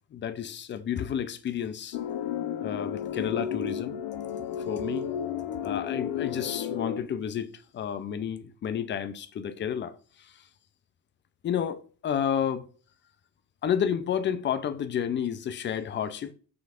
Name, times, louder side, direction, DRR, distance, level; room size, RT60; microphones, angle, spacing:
voice 1, 0.1-2.0 2.6-4.0 4.6-5.1 5.6-10.5 11.4-12.7 13.6-16.3, left 8 dB, 25° left, 0.3 m, -31 dB
sound 1, 1.9-7.0, left 9 dB, 60° left, 0.7 m, -32 dB
5.8 x 3.2 x 2.4 m
hypercardioid pair, 65°, 48 cm